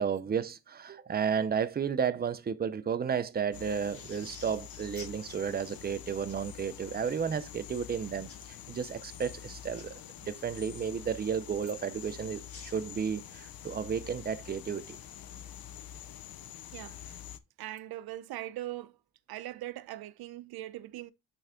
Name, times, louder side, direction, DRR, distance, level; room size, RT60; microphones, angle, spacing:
voice 1, 0.0-8.3 8.7-10.0 10.3-15.0, right 7 dB, 25° right, 0.5 m, -32 dB
sound 1, 3.5-17.4, left 10 dB, 70° left, 0.7 m, -47 dB
sound 2, 3.9-6.4 8.3-8.5 9.1-9.8 12.0-13.9, left 3 dB, 40° left, 1.6 m, -52 dB
voice 2, 16.7-17.2 17.6-19.0 19.3-21.1, right 14 dB, 80° right, 0.6 m, -41 dB
9.0 x 3.5 x 3.6 m
cardioid pair, 135°, 37 cm